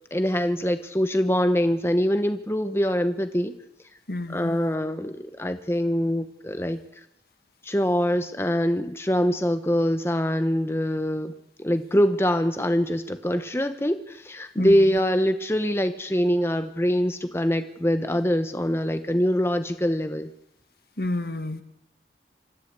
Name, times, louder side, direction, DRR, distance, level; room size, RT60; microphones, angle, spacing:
voice 1, 0.1-3.5 4.3-6.8 7.6-11.3 11.6-20.3, equal, 15° left, 9 dB, 0.9 m, -24 dB
voice 2, 4.1-4.6 14.6-14.9 21.0-21.6, left 2 dB, 60° left, 10 dB, 1.5 m, -30 dB
25.0 x 13.5 x 8.2 m, 0.84 s
head